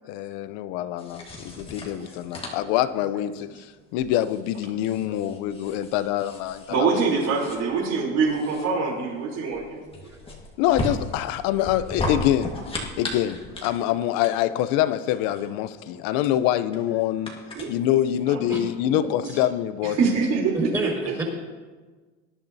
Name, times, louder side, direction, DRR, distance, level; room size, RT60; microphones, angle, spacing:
voice 1, 0.1-3.5 3.9-6.6 10.6-12.5 13.0-17.3 17.7-20.0, left 12 dB, 60° left, 14 dB, 0.7 m, -25 dB
sound 1, 1.0-18.2, left 2 dB, 15° left, 1.7 m, -37 dB
voice 2, 5.0-5.4 12.9-13.0 18.5-18.6 18.9-19.4 20.7-21.2, right 2 dB, 10° right, -1 dB, 4.4 m, -32 dB
voice 3, 6.7-10.1 17.5-18.0 18.3-18.4 19.8-20.9, right 4 dB, 45° right, -1 dB, 3.6 m, -25 dB
19.0 x 11.5 x 2.8 m, 1.4 s
supercardioid pair, 130°, 36 cm